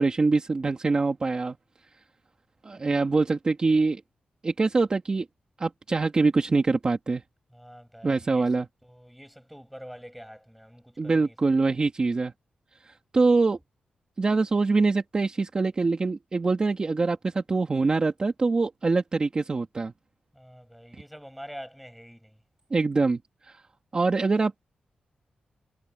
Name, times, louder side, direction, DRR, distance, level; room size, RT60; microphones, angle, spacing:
voice 1, 0.0-1.6 2.6-4.0 4.4-5.3 5.6-7.2 8.0-8.7 11.0-12.3 13.1-13.6 14.2-19.9 22.7-23.2 23.5-23.6 23.9-24.5, right 3 dB, 30° right, 2.4 m, -24 dB
voice 2, 7.5-11.3 11.6-11.8 20.3-22.4, equal, ahead, 6.0 m, -46 dB
wide cardioid pair, 140°, 3 cm